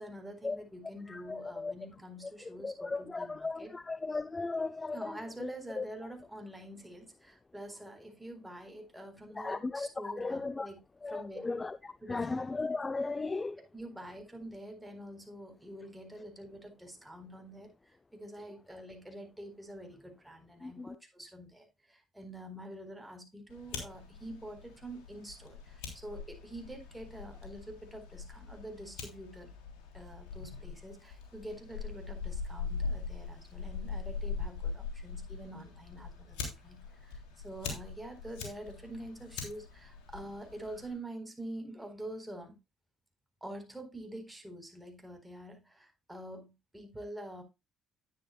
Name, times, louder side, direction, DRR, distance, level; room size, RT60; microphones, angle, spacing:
voice 1, 0.0-3.7 4.9-10.8 11.1-11.4 12.0-12.3 13.7-29.5 29.9-42.5 43.4-47.4, right 1 dB, 5° right, 4.3 m, -46 dB
voice 2, 1.1-1.7 2.4-5.9 9.4-10.7 11.0-13.6 20.6-21.0, left 3 dB, 25° left, 0.5 m, -36 dB
Fire, 23.5-40.9, left 5 dB, 80° left, 3.2 m, -42 dB
11.0 x 9.6 x 2.3 m
hypercardioid pair, 60°, 0 cm